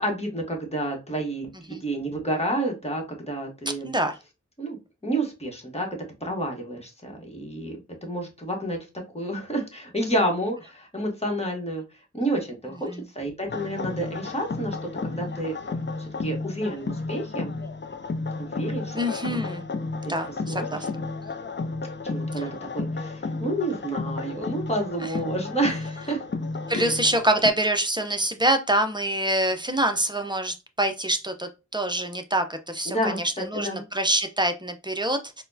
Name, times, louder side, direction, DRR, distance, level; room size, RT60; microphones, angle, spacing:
voice 1, 0.0-3.9 4.6-5.9 6.2-8.8 9.1-11.8 12.1-12.9 13.1-14.8 15.1-15.6 16.0-17.5 18.4-19.0 19.3-19.4 20.5-20.9 22.0-26.2 26.7-27.0 32.9-33.8, right 1 dB, 20° left, 0 dB, 1.1 m, -30 dB
voice 2, 3.8-4.2 12.7-13.1 18.9-19.6 20.1-20.9 25.0-25.1 26.7-35.4, right 1 dB, 15° right, 6 dB, 0.5 m, -26 dB
sound 1, 13.5-27.5, left 3 dB, 40° left, 0.5 m, -32 dB
4.1 x 2.2 x 2.6 m, 0.28 s
wide cardioid pair, 50°, 30 cm